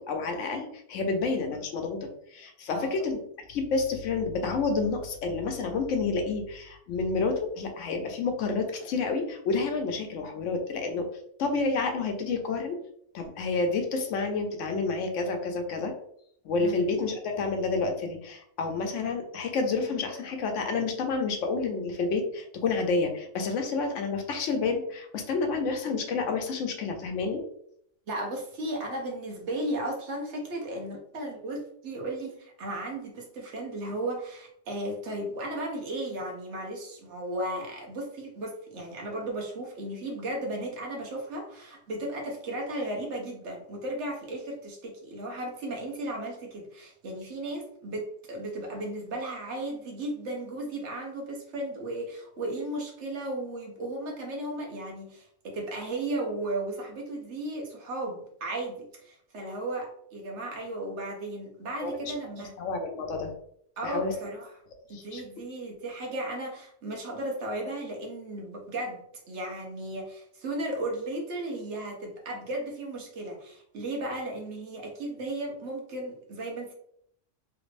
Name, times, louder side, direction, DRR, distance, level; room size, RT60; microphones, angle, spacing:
voice 1, 0.0-3.2 3.5-11.1 11.4-12.8 13.1-15.9 16.4-27.4 61.8-62.1 62.6-63.3 63.8-64.1 64.9-65.2, left 4 dB, 80° left, 4 dB, 1.0 m, -29 dB
voice 2, 28.1-62.6 63.8-64.5 64.9-76.7, right 1 dB, 70° right, 0 dB, 1.1 m, -35 dB
3.3 x 2.5 x 3.2 m, 0.70 s
omnidirectional pair, 1.3 m